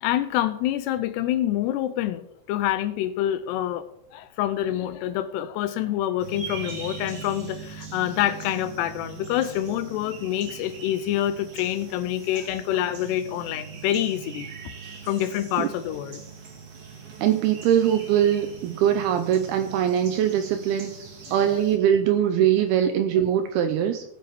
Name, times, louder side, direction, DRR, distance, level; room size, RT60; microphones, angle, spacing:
voice 1, 0.0-14.5 15.0-16.2, left 12 dB, 85° left, 10 dB, 2.5 m, -27 dB
sound 1, 6.2-21.8, right 5 dB, 45° right, 2.0 m, -41 dB
voice 2, 17.2-20.9 21.3-24.0, right 10 dB, 80° right, 7 dB, 2.3 m, -22 dB
19.0 x 7.5 x 3.6 m, 0.79 s
omnidirectional pair, 5.1 m